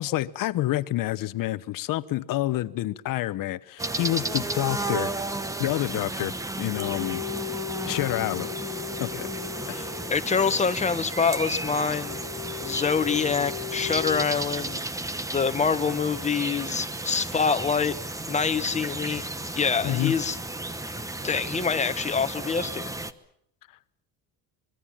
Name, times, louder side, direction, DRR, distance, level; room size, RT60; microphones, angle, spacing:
voice 1, 0.0-5.1 5.6-7.2 7.9-8.5 9.0-9.3 9.7-9.9 17.1-17.2 19.8-20.2, left 15 dB, 55° left, 1.0 m, -28 dB
sound 1, 3.8-23.1, right 2 dB, 10° right, 1.0 m, -33 dB
sound 2, 6.7-10.7 12.1-14.2, left 13 dB, 75° left, 1.5 m, -37 dB
voice 2, 9.7-12.2 12.6-14.8 15.3-18.0 18.3-19.2 19.6-20.4 21.2-22.9, left 5 dB, 15° left, 1.2 m, -26 dB
25.0 x 23.5 x 7.4 m
cardioid pair, 155°, 40 cm